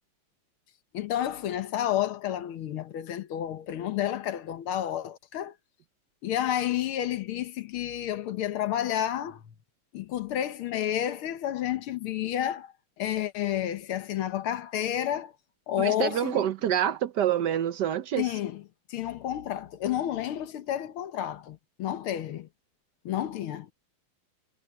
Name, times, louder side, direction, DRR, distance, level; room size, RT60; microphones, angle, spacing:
voice 1, 0.9-5.5 6.2-9.4 9.9-15.3 15.7-16.5 18.2-18.6 18.9-22.5 23.1-23.7, left 11 dB, 90° left, 1.9 m, -30 dB
voice 2, 15.8-18.3, right 10 dB, 65° right, 1.2 m, -27 dB
omnidirectional pair, 2.3 m